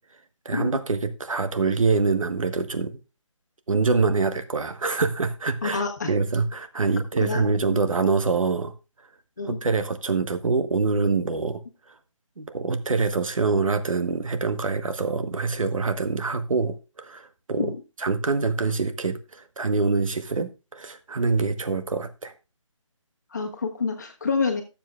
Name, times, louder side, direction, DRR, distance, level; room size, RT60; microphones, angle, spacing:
voice 1, 0.4-3.0 3.7-8.7 9.4-11.6 12.4-17.7 18.0-22.3, right 4 dB, 75° right, 9 dB, 1.3 m, -25 dB
voice 2, 5.6-6.1 7.2-7.4 7.7-7.8 9.4-9.6 17.6-17.7 23.3-24.6, left 4 dB, 35° left, 2 dB, 1.3 m, -27 dB
13.5 x 7.4 x 2.4 m, 0.29 s
hypercardioid pair, 180°, 17 cm